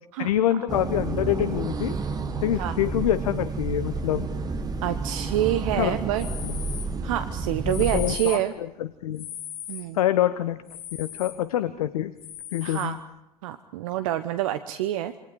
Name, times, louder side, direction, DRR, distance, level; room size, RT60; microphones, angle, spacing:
voice 1, 0.2-1.9 2.4-4.3 5.8-6.0 6.4-6.6 7.7-9.3 9.9-10.6 11.0-12.1 12.5-12.9, left 12 dB, 60° left, 14 dB, 1.0 m, -26 dB
sound 1, 0.7-8.2, right 3 dB, 20° right, 1.9 m, -30 dB
voice 2, 4.8-6.3 7.0-8.5 9.7-10.0 12.6-13.0 13.4-15.1, right 13 dB, 55° right, 11 dB, 1.0 m, -27 dB
sound 2, 6.2-7.0 7.6-8.5 9.2-9.9 10.7-11.4 12.2-12.9, left 10 dB, 30° left, 1.2 m, -38 dB
27.5 x 24.5 x 5.0 m, 0.91 s
figure-of-eight pair, 80°, 20 cm